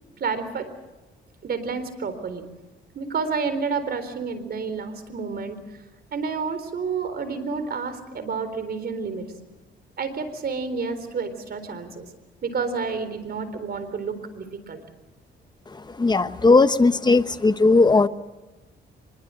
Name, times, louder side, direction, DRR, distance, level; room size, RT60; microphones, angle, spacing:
voice 1, 0.2-0.7 1.4-2.4 2.9-5.6 6.1-9.3 10.0-12.1 12.4-14.8, right 5 dB, 50° right, 11 dB, 4.0 m, -29 dB
voice 2, 16.0-18.1, left 3 dB, 20° left, 11 dB, 1.1 m, -17 dB
24.5 x 22.0 x 7.7 m, 1.1 s
cardioid pair, 90°, 20 cm